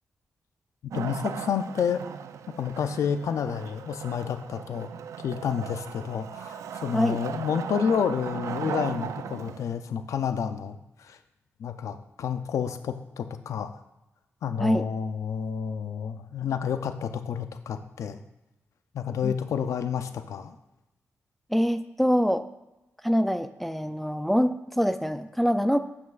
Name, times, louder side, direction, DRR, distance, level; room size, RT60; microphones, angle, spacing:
voice 1, 0.9-2.0 2.6-4.9 5.2-11.2 11.6-13.8 14.4-18.2 18.9-20.6, left 7 dB, 80° left, 9 dB, 0.5 m, -30 dB
Wood, 0.9-9.8, right 8 dB, 80° right, 0.4 m, -37 dB
voice 2, 21.5-22.5 23.0-25.8, equal, ahead, 9 dB, 0.4 m, -24 dB
8.1 x 7.0 x 2.5 m, 0.97 s
cardioid pair, 70°, 5 cm